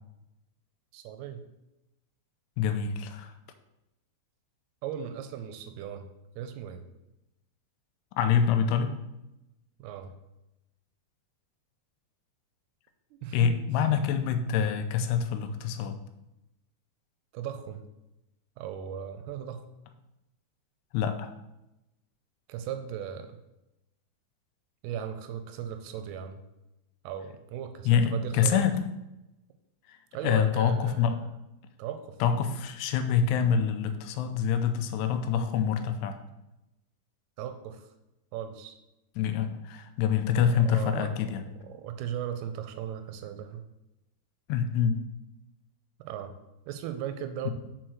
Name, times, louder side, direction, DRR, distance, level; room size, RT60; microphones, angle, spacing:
voice 1, 0.9-1.4 4.8-6.1 6.4-6.9 9.8-10.1 13.1-13.6 17.3-17.8 18.6-19.6 22.5-23.4 24.8-26.4 27.0-28.7 30.1-31.3 31.8-32.2 37.4-37.9 38.3-38.8 40.5-41.3 41.6-43.6 46.0-46.4 46.7-47.5, right 9 dB, 85° right, 8 dB, 2.5 m, -37 dB
voice 2, 2.6-3.3 8.2-9.0 13.3-16.0 20.9-21.3 27.9-28.7 30.2-31.1 32.2-36.2 39.2-41.4 44.5-45.0 47.5-47.6, left 7 dB, 90° left, 8 dB, 2.8 m, -26 dB
6.3 x 4.5 x 6.1 m, 0.94 s
omnidirectional pair, 4.8 m